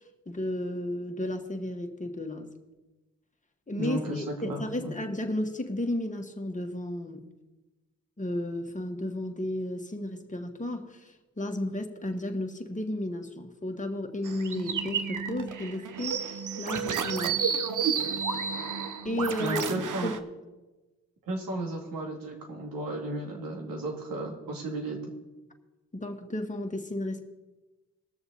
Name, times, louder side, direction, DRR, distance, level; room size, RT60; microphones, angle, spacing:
voice 1, 0.3-2.5 3.7-7.3 8.2-17.4 17.9-18.0 19.0-19.6 20.0-20.2 25.9-27.2, left 1 dB, 20° left, 3 dB, 1.8 m, -33 dB
voice 2, 3.8-4.9 19.4-20.1 21.3-25.0, right 2 dB, 75° right, 1 dB, 2.5 m, -34 dB
sound 1, 14.2-20.2, right 6 dB, 60° right, 1.0 m, -31 dB
20.0 x 6.9 x 4.2 m, 1.1 s
supercardioid pair, 50°, 34 cm